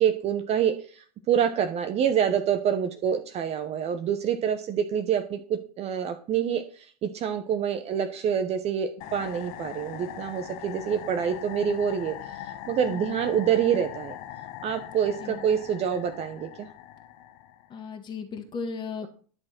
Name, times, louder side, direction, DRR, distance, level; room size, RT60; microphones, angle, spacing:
voice 1, 0.0-14.2 14.6-16.7, right 8 dB, 30° right, 7 dB, 1.1 m, -27 dB
sound 1, 9.0-17.8, left 11 dB, 45° left, 1.1 m, -41 dB
voice 2, 12.9-13.2 15.2-15.5 17.7-19.1, left 5 dB, 20° left, 3 dB, 1.9 m, -36 dB
11.0 x 6.4 x 6.1 m, 0.43 s
figure-of-eight pair, 90°, 21 cm